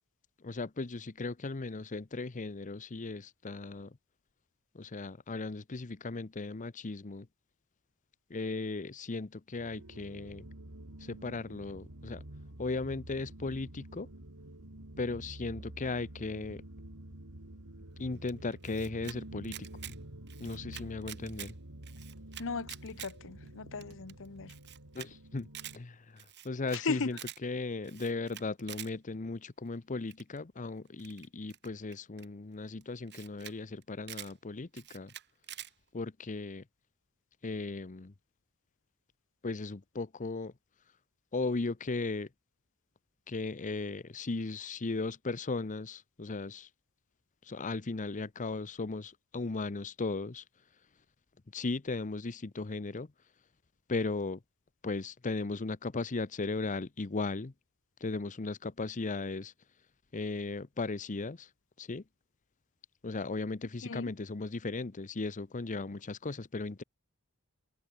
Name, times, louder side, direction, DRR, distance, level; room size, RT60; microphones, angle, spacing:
voice 1, 0.4-4.0 4.7-7.3 8.3-10.5 11.0-12.2 12.6-14.1 15.0-16.6 18.0-19.7 20.4-21.5 24.9-25.5 25.7-35.1 35.9-36.6 37.4-38.1 39.4-40.5 41.3-42.3 43.3-46.7 47.4-50.4 51.5-53.1 53.9-54.4 54.8-57.5 58.0-59.5 60.1-61.5 61.8-62.0 63.0-66.8, left 3 dB, 35° left, 0.7 m, -37 dB
sound 1, 9.5-25.7, right 1 dB, 85° right, 3.1 m, -49 dB
Camera, 18.3-19.2 19.4-20.0 20.3-21.5 21.8-23.1 23.5-23.6 23.8-23.9 24.1-24.2 24.5-25.1 25.4-25.8 26.2-26.8 27.1-27.4 27.8-28.9 30.1-30.4 31.0-32.3 32.8-32.9 33.1-33.6 33.8-34.3 34.7-35.7, right 12 dB, 50° right, 2.9 m, -46 dB
voice 2, 22.4-24.5 26.7-27.1 63.8-64.1, left 4 dB, 60° left, 1.0 m, -37 dB
head